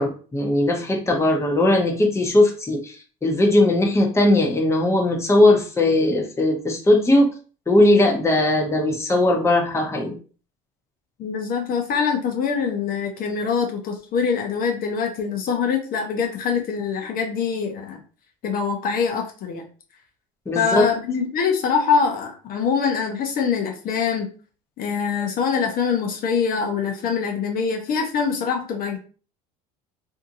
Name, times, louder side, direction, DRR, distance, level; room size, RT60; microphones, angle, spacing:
voice 1, 0.0-3.0 3.2-7.3 7.7-10.2 20.5-20.8, left 1 dB, 15° left, 1 dB, 0.8 m, -19 dB
voice 2, 11.2-18.0 18.4-19.6 20.5-24.3 24.8-29.0, left 6 dB, 50° left, 2 dB, 0.7 m, -24 dB
2.6 x 2.5 x 2.6 m, 0.38 s
supercardioid pair, 80°, 19 cm